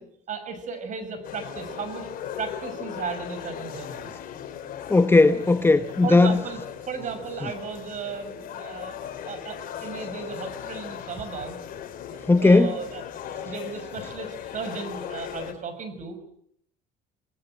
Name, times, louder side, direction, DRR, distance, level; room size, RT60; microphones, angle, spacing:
voice 1, 0.3-2.1 2.4-4.1 6.0-6.6 6.9-11.6 12.1-16.2, right 5 dB, 45° right, 6.2 m, -35 dB
sound 1, 1.2-15.5, left 9 dB, 55° left, 3.6 m, -38 dB
voice 2, 4.9-6.4 12.3-12.7, left 3 dB, 15° left, 1.0 m, -17 dB
28.5 x 19.5 x 7.8 m
cardioid pair, 115°, 17 cm